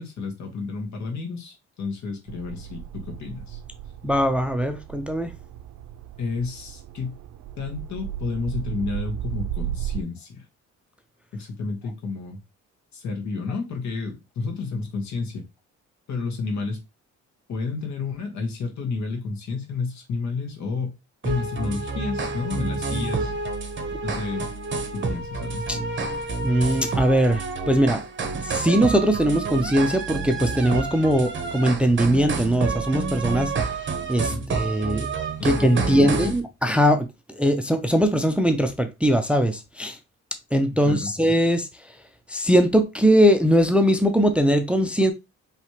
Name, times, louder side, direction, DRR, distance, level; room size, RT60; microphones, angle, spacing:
voice 1, 0.0-3.6 6.2-7.2 7.6-10.5 11.3-12.4 12.9-15.4 16.1-16.8 17.5-21.0 21.2-23.3 24.0-24.5 24.9-25.8 34.3-34.4 35.4-36.3 40.8-41.1, left 4 dB, 70° left, 1.6 m, -31 dB
sound 1, 2.3-10.0, right 11 dB, 70° right, 0.5 m, -35 dB
voice 2, 4.0-5.3 25.7-25.8 26.4-28.0 28.3-33.5 34.1-35.1 35.4-37.1 37.4-40.0 40.5-41.7 42.3-45.1, equal, 5° right, 0.5 m, -20 dB
sound 2, 21.2-36.4, right 4 dB, 40° right, 0.9 m, -29 dB
4.6 x 3.3 x 2.9 m
cardioid pair, 90°, 30 cm